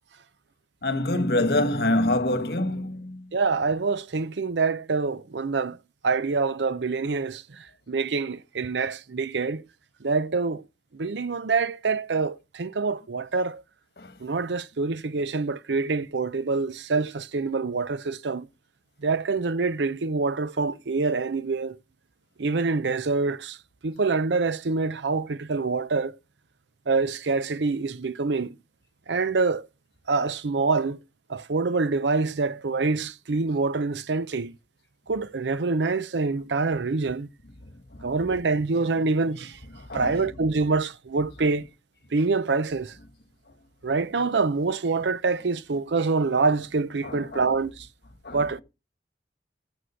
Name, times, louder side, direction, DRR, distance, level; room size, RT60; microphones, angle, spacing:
voice 1, 0.8-3.2 14.0-14.1 38.0-38.1 39.9-40.4 41.4-41.5 47.0-47.6 48.2-48.5, left 1 dB, 65° left, 1.4 m, -26 dB
voice 2, 3.3-5.8 6.0-9.6 10.0-10.6 10.9-13.6 14.2-18.5 19.0-21.8 22.4-23.6 23.8-26.2 26.9-28.6 29.1-29.7 30.1-31.0 31.3-34.5 35.1-37.3 38.0-39.6 39.9-41.7 42.1-43.0 43.8-47.9 48.3-48.6, right 4 dB, 90° right, 0.6 m, -26 dB
11.5 x 6.3 x 5.6 m
head